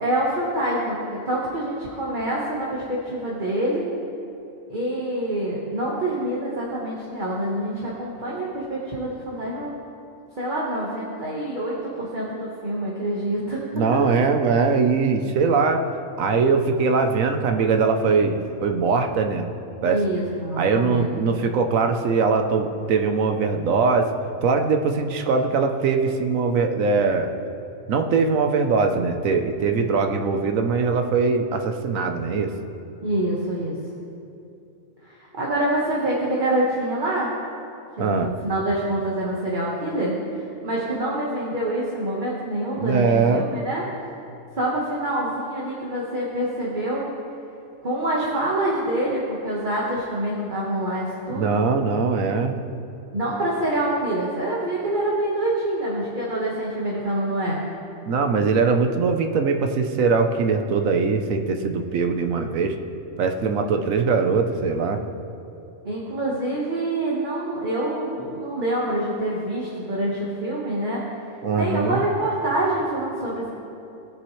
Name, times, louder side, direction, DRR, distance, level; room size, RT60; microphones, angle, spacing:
voice 1, 0.0-3.8 4.7-9.7 10.4-13.6 13.9-14.1 19.8-21.4 33.0-33.8 35.1-37.3 38.0-43.8 44.5-47.0 47.8-51.6 53.1-57.6 65.8-71.2 71.5-73.5, right 1 dB, 40° right, -5 dB, 1.5 m, -26 dB
voice 2, 13.7-15.8 16.2-19.5 19.8-20.0 20.6-24.1 24.4-27.3 27.9-32.5 38.0-38.3 42.8-43.4 51.3-52.5 58.0-62.8 63.2-65.0 71.4-72.1, right 4 dB, 85° right, 5 dB, 1.2 m, -21 dB
19.5 x 6.9 x 3.2 m, 2.8 s
omnidirectional pair, 1.4 m